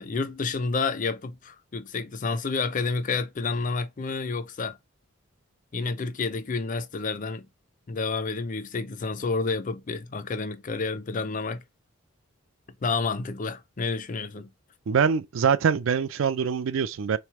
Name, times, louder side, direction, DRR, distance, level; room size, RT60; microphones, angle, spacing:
voice 1, 0.0-4.8 5.7-7.5 7.9-11.6 12.8-14.5, left 4 dB, 40° left, 0.5 m, -29 dB
voice 2, 14.9-17.2, right 6 dB, 70° right, 0.4 m, -24 dB
3.6 x 3.3 x 4.5 m
head